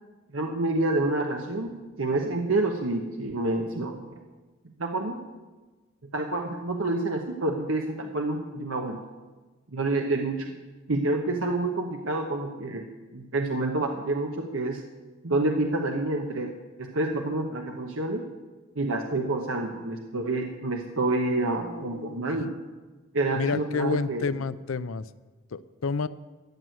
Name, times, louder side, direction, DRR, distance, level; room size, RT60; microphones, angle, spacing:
voice 1, 0.3-4.0 4.8-5.2 6.1-9.0 9.7-10.5 10.9-12.9 13.1-14.8 15.2-16.5 16.8-18.2 18.8-22.5 23.1-24.3, right 2 dB, 75° right, 3 dB, 1.1 m, -28 dB
voice 2, 21.6-22.4 23.3-25.0 25.5-26.1, left 4 dB, 75° left, 15 dB, 0.5 m, -30 dB
14.5 x 6.3 x 9.3 m, 1.2 s
head